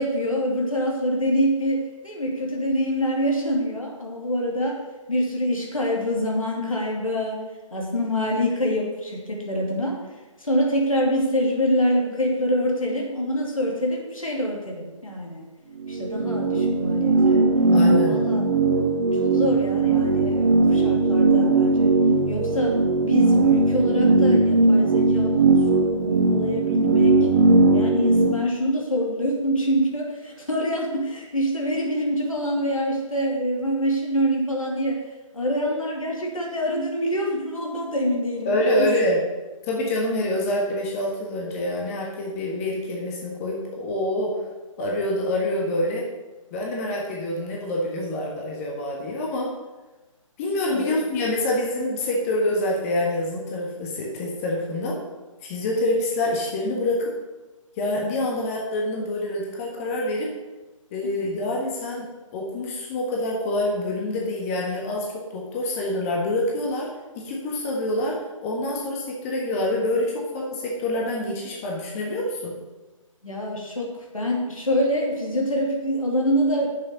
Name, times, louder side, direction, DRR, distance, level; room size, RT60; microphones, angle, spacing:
voice 1, 0.0-4.8 5.1-7.4 7.7-10.0 10.4-15.5 15.9-17.6 18.1-18.4 19.2-22.0 22.3-22.7 23.0-27.3 27.7-35.0 35.3-38.9 50.7-51.0 73.2-76.7, equal, 75° left, -1 dB, 2.8 m, -25 dB
sound 1, 15.8-28.3, right 3 dB, 35° right, 0.9 m, -19 dB
voice 2, 17.7-18.2 38.4-39.2 39.6-44.3 44.8-46.1 46.5-49.5 50.4-55.0 55.4-57.1 57.8-60.3 60.9-62.1 62.3-66.9 67.1-72.6, left 1 dB, 25° left, -2 dB, 1.5 m, -26 dB
7.0 x 6.5 x 6.9 m, 1.2 s
figure-of-eight pair, 135°, 17 cm